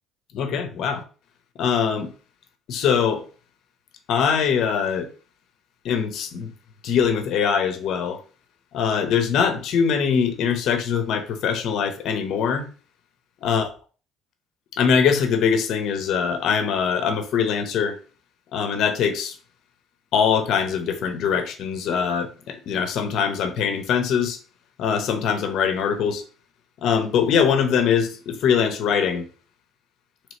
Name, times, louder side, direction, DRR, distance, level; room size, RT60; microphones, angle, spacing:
voice 1, 0.3-1.0 1.6-2.1 2.7-3.3 4.1-5.1 5.8-6.5 6.8-8.2 8.7-12.7 13.4-13.7 14.8-18.0 18.5-19.3 20.1-24.4 24.8-26.2 26.8-29.3, left 7 dB, 65° left, 0.8 m, -22 dB
3.2 x 3.0 x 4.2 m
cardioid pair, 105°, 0 cm